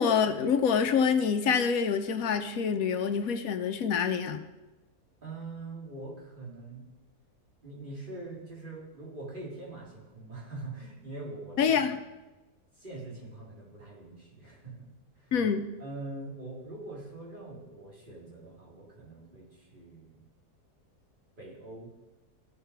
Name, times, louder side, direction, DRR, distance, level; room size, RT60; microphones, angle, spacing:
voice 1, 0.0-4.4 11.6-12.0 15.3-15.7, left 6 dB, 65° left, 8 dB, 1.1 m, -26 dB
voice 2, 5.2-6.8 7.6-12.0 12.7-15.3 15.8-20.2 21.4-21.9, right 2 dB, 30° right, -4 dB, 2.8 m, -43 dB
15.5 x 5.6 x 4.6 m, 1.1 s
omnidirectional pair, 1.7 m